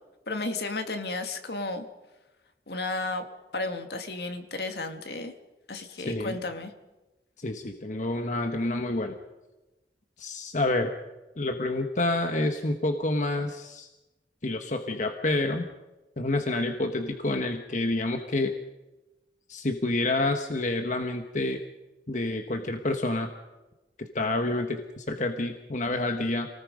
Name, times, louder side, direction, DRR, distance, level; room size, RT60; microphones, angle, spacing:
voice 1, 0.3-1.9 2.7-3.2 3.5-5.3 5.7-6.7, left 2 dB, 65° left, 6 dB, 2.0 m, -33 dB
voice 2, 6.0-6.4 7.4-9.1 10.2-10.9 11.4-13.9 14.4-15.7 16.2-18.5 19.5-21.6 22.1-23.3 24.0-26.5, left 2 dB, 45° left, 5 dB, 1.3 m, -28 dB
28.0 x 19.0 x 5.3 m, 1.1 s
head